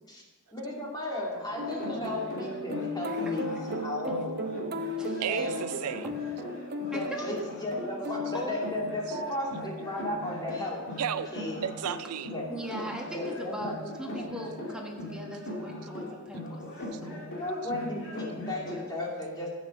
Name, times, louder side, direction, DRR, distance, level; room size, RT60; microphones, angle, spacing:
voice 1, 0.5-3.5 3.8-4.7 5.2-5.7 6.7-10.9 11.3-11.6 12.3-12.5 13.1-14.3 17.4-19.5, left 1 dB, 20° left, -3 dB, 2.6 m, -35 dB
sound 1, 1.5-18.8, left 1 dB, 60° left, 2.7 m, -40 dB
sound 2, 1.6-9.0, left 1 dB, 45° right, 0.9 m, -36 dB
voice 2, 3.1-3.4 4.1-4.2 5.0-5.1 6.9-7.0 8.3-8.6 12.5-13.7 14.0-16.6 16.9-17.3, equal, 5° right, -1 dB, 1.6 m, -40 dB
voice 3, 5.2-6.1 11.0-11.3 11.6-12.3 16.9-17.0, right 9 dB, 85° right, 13 dB, 0.5 m, -33 dB
12.0 x 8.5 x 5.2 m, 1.2 s
head